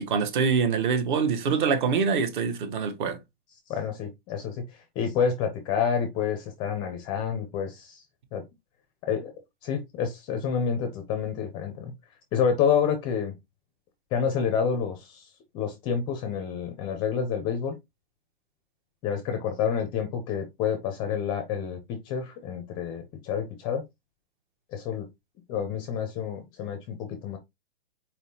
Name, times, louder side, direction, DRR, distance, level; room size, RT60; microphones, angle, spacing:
voice 1, 0.0-3.2, right 5 dB, 50° right, 1.0 m, -25 dB
voice 2, 3.7-8.0 8.3-8.4 9.0-9.3 9.6-11.9 12.3-13.3 14.1-15.3 15.5-17.8 19.0-23.8 24.7-25.1 25.5-27.4, left 7 dB, 15° left, 0.4 m, -28 dB
4.3 x 3.6 x 2.7 m
hypercardioid pair, 145°, 31 cm